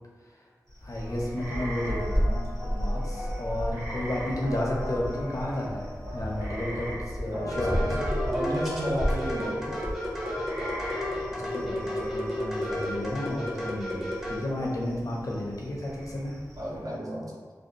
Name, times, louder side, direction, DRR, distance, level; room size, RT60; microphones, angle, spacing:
sound 1, 0.7-16.9, equal, 45° right, 0.9 m, -34 dB
voice 1, 0.8-8.1 11.4-14.0 14.3-16.4, left 1 dB, 60° left, -3 dB, 0.6 m, -32 dB
sound 2, 1.0-12.6, left 1 dB, 85° right, 1.4 m, -41 dB
voice 2, 7.3-7.9 8.2-9.8 16.6-17.3, equal, 65° right, -4 dB, 0.7 m, -33 dB
sound 3, 7.5-14.4, left 1 dB, 5° right, 0.6 m, -32 dB
2.6 x 2.2 x 2.7 m, 1.5 s
wide cardioid pair, 65°, 6 cm